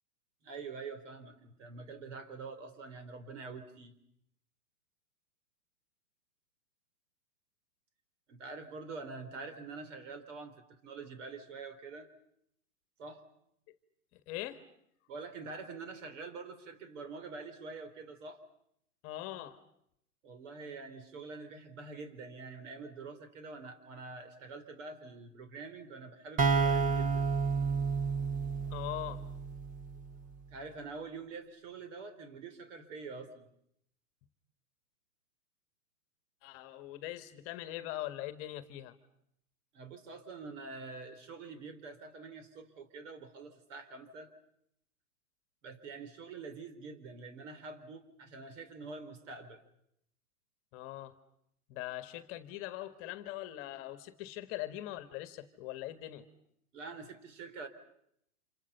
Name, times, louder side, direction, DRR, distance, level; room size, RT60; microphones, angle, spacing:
voice 1, 0.4-4.0 8.3-12.1 13.0-13.2 15.1-18.4 20.2-27.2 30.5-33.5 39.7-44.3 45.6-49.6 56.7-57.7, right 4 dB, 55° right, 10 dB, 4.2 m, -46 dB
voice 2, 14.1-14.6 19.0-19.6 28.7-29.2 36.4-39.0 50.7-51.1 51.7-56.3, left 14 dB, 30° left, 11 dB, 1.5 m, -41 dB
sound 1, 26.4-30.0, right 5 dB, 15° right, 1.3 m, -30 dB
29.5 x 27.0 x 5.7 m, 0.74 s
hypercardioid pair, 140°, 44 cm